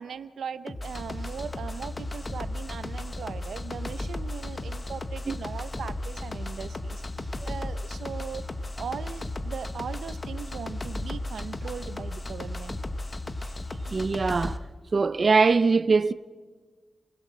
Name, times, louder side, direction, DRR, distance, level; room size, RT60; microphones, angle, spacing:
voice 1, 0.0-8.5 8.8-12.8, right 7 dB, 90° right, 0.7 m, -39 dB
sound 1, 0.7-14.6, left 2 dB, 30° left, 1.2 m, -35 dB
voice 2, 13.9-14.6 14.9-16.1, right 4 dB, 45° right, 0.6 m, -22 dB
28.5 x 16.5 x 7.5 m
cardioid pair, 85°, 0 cm